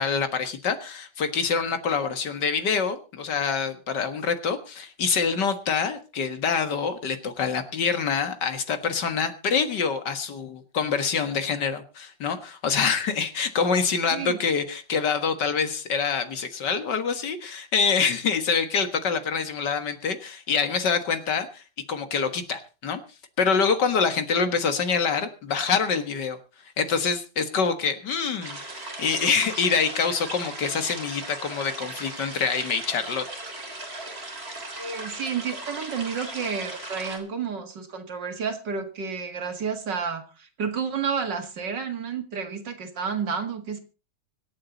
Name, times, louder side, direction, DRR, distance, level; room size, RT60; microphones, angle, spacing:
voice 1, 0.0-21.6 21.9-23.0 23.4-26.4 26.8-33.2, left 5 dB, 70° left, 9 dB, 2.1 m, -26 dB
sound 1, 28.4-37.2, right 2 dB, 30° right, 4.1 m, -37 dB
voice 2, 34.4-43.8, right 6 dB, 70° right, 6 dB, 2.7 m, -31 dB
25.0 x 8.7 x 4.0 m, 0.33 s
omnidirectional pair, 2.0 m